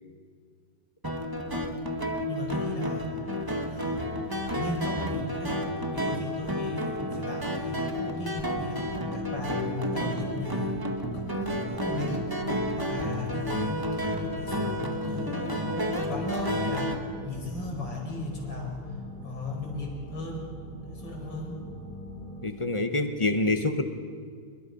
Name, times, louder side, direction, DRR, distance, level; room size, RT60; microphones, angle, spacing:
sound 1, 1.0-16.9, equal, 10° right, 1.4 m, -31 dB
voice 1, 2.3-4.1 4.6-5.6 5.9-8.8 9.1-10.8 11.1-12.3 12.6-16.9 17.2-18.8 19.2-20.5 20.9-21.6, left 1 dB, 60° left, 0 dB, 5.7 m, -36 dB
sound 2, 8.3-22.5, left 1 dB, 20° left, 5.2 m, -43 dB
voice 2, 22.4-23.8, left 2 dB, 45° left, 7 dB, 0.4 m, -26 dB
27.5 x 21.5 x 5.4 m, 2.1 s
omnidirectional pair, 2.4 m